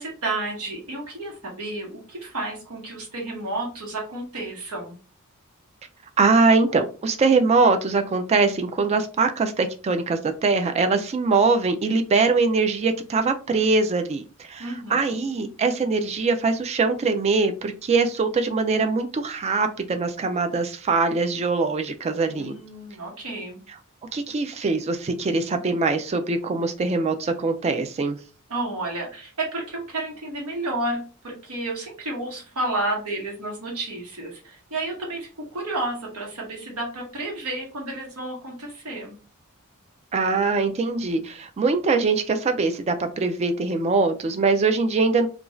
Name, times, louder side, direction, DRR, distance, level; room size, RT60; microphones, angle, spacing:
voice 1, 0.0-4.9 14.6-15.2 22.4-23.6 28.5-39.2, right 2 dB, 80° right, -1 dB, 1.1 m, -31 dB
voice 2, 6.2-22.6 24.1-28.2 40.1-45.3, right 4 dB, 30° right, 7 dB, 0.3 m, -22 dB
2.5 x 2.3 x 3.0 m, 0.36 s
head